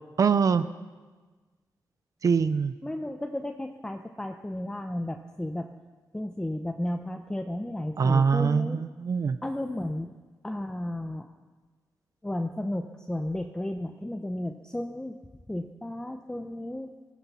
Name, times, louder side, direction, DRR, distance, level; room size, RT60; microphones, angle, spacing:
voice 1, 0.2-0.6 2.2-2.7 8.0-9.4, right 6 dB, 55° right, 12 dB, 0.6 m, -23 dB
voice 2, 2.8-5.7 6.1-8.8 9.4-10.1 10.4-11.3 12.2-15.2 15.5-16.9, left 1 dB, 10° left, 5 dB, 0.8 m, -33 dB
17.0 x 14.5 x 5.7 m, 1.3 s
cardioid pair, 85°, 7 cm